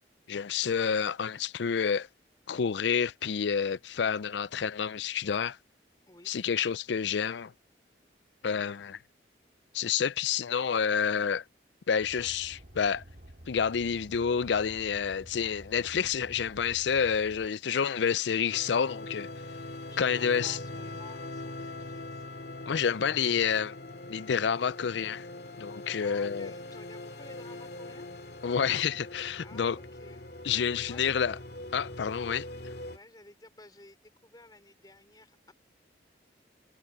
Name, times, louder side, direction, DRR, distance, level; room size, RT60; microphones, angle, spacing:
voice 1, 0.3-2.1 2.5-5.6 6.3-7.5 8.4-9.0 9.7-11.4 11.9-13.0 13.5-19.3 20.0-20.6 22.7-23.7 24.1-25.3 25.6-26.5 28.4-29.8 30.4-31.4 31.7-32.5, left 7 dB, 75° left, 0.4 m, -29 dB
Car, 12.0-17.5, equal, 50° right, 2.6 m, -51 dB
sound 1, 18.5-33.0, left 2 dB, 60° left, 2.5 m, -42 dB
voice 2, 19.9-22.3 26.0-28.1 29.4-30.3 30.8-31.0 32.9-35.5, left 2 dB, 20° left, 3.9 m, -54 dB
head